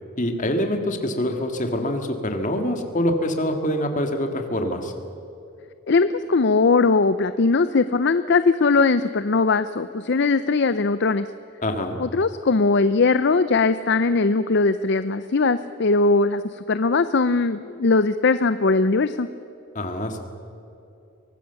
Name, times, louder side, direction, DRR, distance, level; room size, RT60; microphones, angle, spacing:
voice 1, 0.2-4.9 11.6-12.0 19.7-20.2, left 1 dB, 35° left, 5 dB, 2.0 m, -25 dB
voice 2, 5.9-11.3 12.0-19.3, left 3 dB, 50° left, 12 dB, 0.5 m, -20 dB
24.0 x 18.5 x 7.1 m, 2.8 s
head